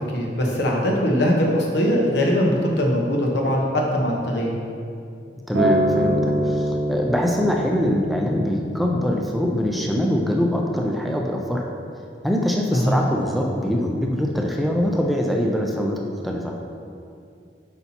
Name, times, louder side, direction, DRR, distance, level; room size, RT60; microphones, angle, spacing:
voice 1, 0.1-4.5 12.7-13.0, equal, 75° left, -1 dB, 1.0 m, -21 dB
voice 2, 5.5-11.6 12.2-16.5, equal, ahead, 0 dB, 0.4 m, -23 dB
Acoustic guitar, 5.5-9.8 10.7-10.8, right 1 dB, 80° right, 1.4 m, -25 dB
8.2 x 5.5 x 2.9 m, 2.4 s
head